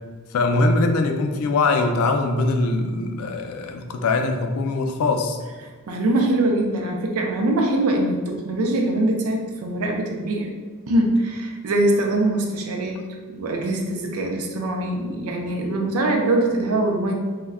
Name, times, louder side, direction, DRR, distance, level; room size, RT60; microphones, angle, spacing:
voice 1, 0.3-5.4, left 3 dB, 75° left, 5 dB, 0.3 m, -22 dB
voice 2, 5.9-10.5 10.9-13.0 13.3-17.1, right 1 dB, 70° right, 1 dB, 0.4 m, -23 dB
2.1 x 2.1 x 3.5 m, 1.5 s
head